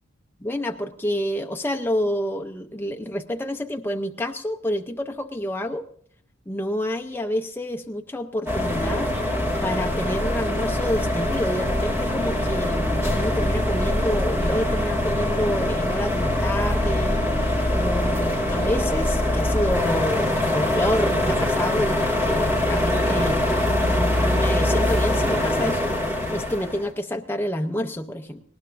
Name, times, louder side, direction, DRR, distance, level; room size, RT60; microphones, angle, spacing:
voice 1, 0.4-5.9 6.5-9.1 9.6-17.2 17.7-25.9 26.3-28.4, left 1 dB, 10° left, 5 dB, 0.5 m, -28 dB
sound 1, 8.5-26.9, left 1 dB, 15° right, 2.0 m, -23 dB
19.0 x 18.5 x 2.5 m, 0.63 s
head